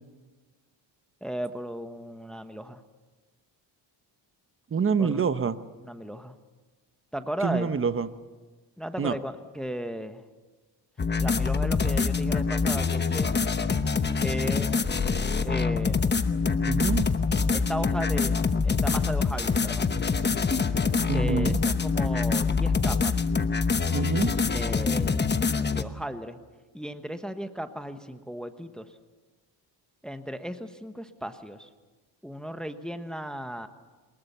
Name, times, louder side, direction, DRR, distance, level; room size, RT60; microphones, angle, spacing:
voice 1, 1.2-2.8 5.0-5.2 5.8-6.4 7.1-7.7 8.8-10.2 11.2-13.3 14.2-14.8 15.4-16.3 17.5-19.9 21.1-23.2 24.5-25.1 25.8-26.4 26.7-29.0 30.0-31.7 32.2-33.7, equal, ahead, 8 dB, 1.1 m, -35 dB
voice 2, 4.7-5.6 7.4-8.1 9.0-9.2 16.6-17.1 21.1-21.6 23.9-24.3, right 6 dB, 30° right, 11 dB, 1.0 m, -26 dB
sound 1, 11.0-25.8, left 5 dB, 25° left, 1.0 m, -25 dB
23.5 x 20.5 x 6.9 m, 1.3 s
cardioid pair, 115°, 45 cm